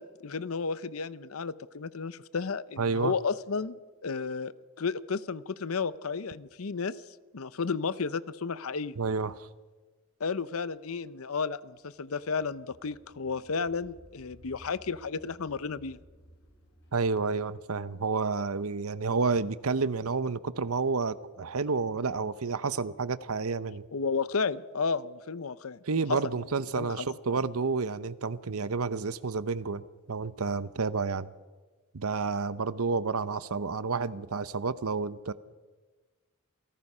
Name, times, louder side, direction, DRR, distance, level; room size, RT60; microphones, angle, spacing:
voice 1, 0.0-7.0 7.3-9.0 10.2-16.0 23.9-25.8 26.1-26.2 26.7-27.1, left 5 dB, 75° left, 16 dB, 0.7 m, -33 dB
voice 2, 2.8-3.1 9.0-9.5 16.9-23.8 25.9-29.8 30.1-31.3 31.9-35.3, right 4 dB, 80° right, 15 dB, 0.8 m, -30 dB
sound 1, 10.9-19.5, equal, 55° left, 5.4 m, -58 dB
28.0 x 18.0 x 5.5 m, 1.3 s
head